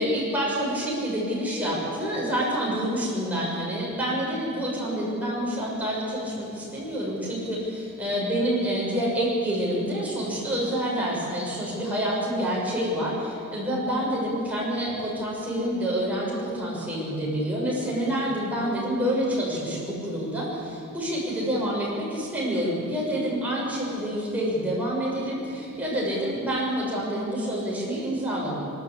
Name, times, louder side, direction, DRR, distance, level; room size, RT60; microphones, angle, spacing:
voice 1, 0.0-28.6, equal, 5° right, -6 dB, 6.6 m, -27 dB
25.5 x 13.0 x 8.6 m, 2.5 s
head